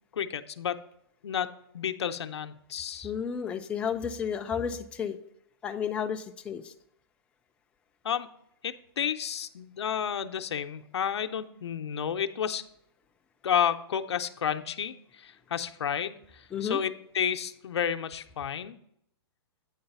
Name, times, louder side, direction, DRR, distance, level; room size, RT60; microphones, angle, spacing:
voice 1, 0.1-0.8 1.2-3.1 8.0-8.3 8.6-12.6 13.4-18.8, left 8 dB, 90° left, 8 dB, 0.6 m, -31 dB
voice 2, 3.0-5.2 5.6-6.7 16.5-16.8, left 7 dB, 10° left, 4 dB, 0.3 m, -32 dB
8.8 x 3.9 x 5.4 m, 0.72 s
hypercardioid pair, 145°, 14 cm